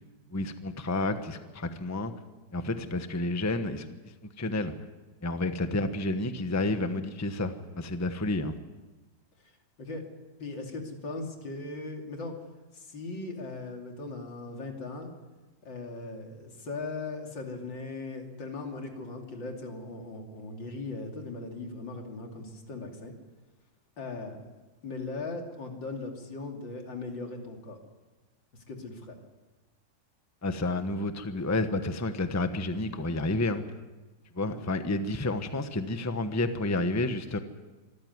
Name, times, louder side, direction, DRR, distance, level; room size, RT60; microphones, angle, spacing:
voice 1, 0.3-2.1 2.5-3.9 4.4-4.7 5.2-8.6 30.4-33.6 34.3-37.4, left 2 dB, 10° left, 8 dB, 0.9 m, -30 dB
voice 2, 10.4-12.4 12.7-15.1 15.6-23.2 24.0-24.5 24.8-27.8 28.7-29.2 34.5-34.6, left 3 dB, 80° left, 2 dB, 3.6 m, -39 dB
24.5 x 14.0 x 9.5 m, 1.2 s
omnidirectional pair, 2.0 m